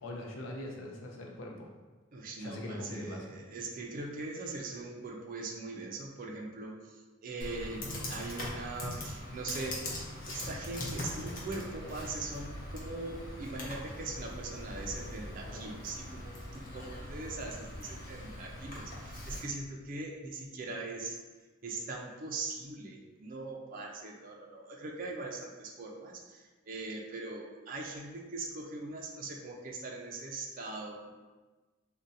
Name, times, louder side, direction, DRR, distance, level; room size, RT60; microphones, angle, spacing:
voice 1, 0.0-1.7 2.4-3.3, left 1 dB, 75° left, 0 dB, 0.5 m, -41 dB
voice 2, 2.1-21.2 21.6-31.1, right 3 dB, 45° right, -1 dB, 0.4 m, -41 dB
Computer keyboard, 7.4-19.4, left 1 dB, 45° left, 0.7 m, -42 dB
sound 1, 12.1-18.9, equal, 10° right, 0.7 m, -55 dB
2.5 x 2.1 x 4.0 m, 1.3 s
head